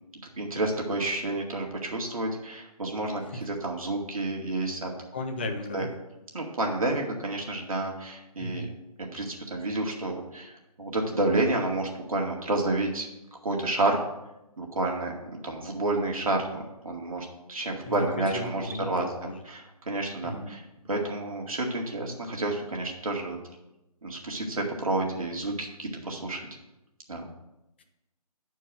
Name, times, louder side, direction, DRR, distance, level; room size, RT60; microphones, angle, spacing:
voice 1, 0.4-4.9 5.7-5.9 6.3-8.7 9.1-13.1 13.4-14.0 14.6-19.0 19.5-20.6 20.9-23.4 24.0-26.5 27.1-27.3, right 2 dB, 60° right, 0 dB, 2.0 m, -30 dB
voice 2, 5.1-5.9 8.4-8.7 17.9-19.4 20.2-20.6 27.8-27.9, left 1 dB, 15° left, 4 dB, 0.4 m, -35 dB
9.4 x 4.6 x 6.3 m, 0.94 s
figure-of-eight pair, 150°, 20 cm